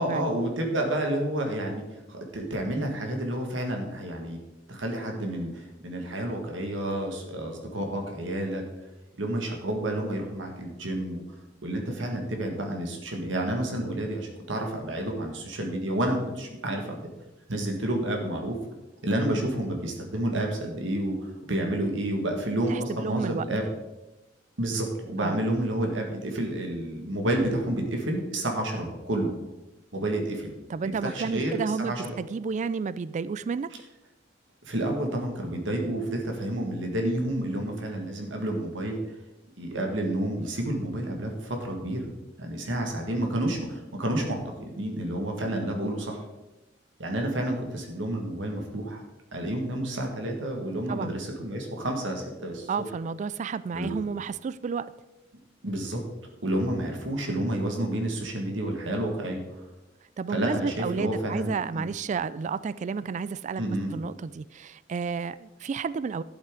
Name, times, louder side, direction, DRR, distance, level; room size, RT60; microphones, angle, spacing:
voice 1, 0.0-1.8 2.1-4.4 4.7-8.6 9.2-11.2 11.6-17.1 17.5-18.6 19.0-21.1 21.5-23.6 24.6-29.3 29.9-30.5 30.8-32.2 34.6-39.0 39.6-42.1 42.4-44.4 44.7-46.2 47.0-49.0 49.3-52.7 53.7-53.9 55.6-56.0 56.4-59.4 60.3-61.8 63.6-64.0, right 1 dB, 80° right, 2 dB, 1.8 m, -30 dB
voice 2, 22.7-23.5 25.2-25.4 30.7-33.7 50.9-51.1 52.7-54.9 60.2-63.6 63.9-66.2, right 5 dB, 40° right, 17 dB, 0.3 m, -31 dB
11.5 x 8.0 x 3.8 m, 1.0 s
head